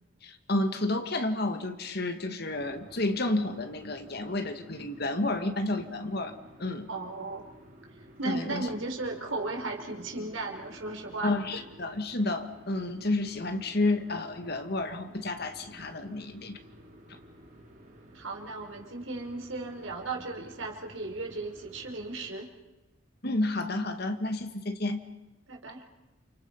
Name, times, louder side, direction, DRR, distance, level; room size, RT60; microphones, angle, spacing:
voice 1, 0.2-6.3 6.6-6.9 8.3-8.7 11.2-16.6 23.2-25.0, left 2 dB, 50° left, 7 dB, 2.1 m, -30 dB
sound 1, 2.5-22.3, equal, 40° right, 4.9 m, -53 dB
voice 2, 6.9-7.5 8.2-11.6 18.1-22.5 25.5-25.8, right 2 dB, 80° right, 2 dB, 5.0 m, -36 dB
29.5 x 29.5 x 5.6 m, 1.0 s
head